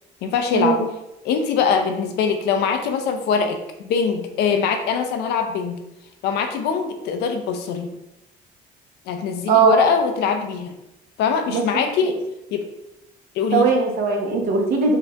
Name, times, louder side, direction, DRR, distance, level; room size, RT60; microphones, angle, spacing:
voice 1, 0.2-0.8 1.2-5.8 6.2-7.9 9.1-10.7 11.2-12.2 12.5-12.7 13.3-13.7, left 6 dB, 80° left, 6 dB, 0.6 m, -22 dB
voice 2, 9.5-9.8 11.5-11.6 13.5-15.0, right 5 dB, 60° right, 0 dB, 1.0 m, -19 dB
4.6 x 2.5 x 3.3 m, 0.91 s
cardioid pair, 110°, 17 cm